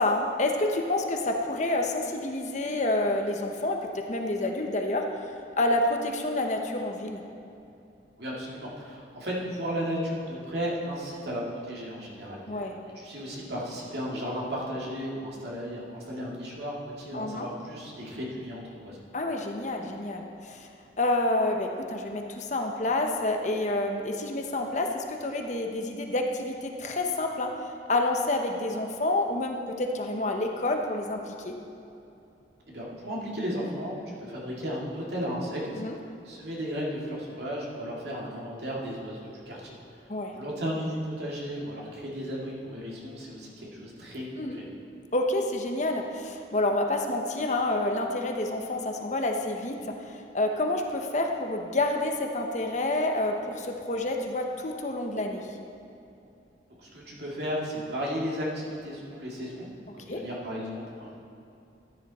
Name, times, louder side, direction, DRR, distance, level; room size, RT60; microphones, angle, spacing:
voice 1, 0.0-5.3 5.6-7.2 12.5-12.8 17.1-17.5 19.1-20.7 21.0-27.5 27.9-31.6 35.7-35.9 40.1-40.4 44.4-44.6 45.1-55.5 60.1-60.2, left 2 dB, 40° left, 3 dB, 0.9 m, -28 dB
voice 2, 8.2-12.7 12.9-19.0 32.7-35.8 36.2-40.1 40.3-44.6 56.8-59.7 59.9-61.2, equal, 65° right, -4 dB, 2.5 m, -34 dB
14.0 x 10.0 x 4.2 m, 2.7 s
head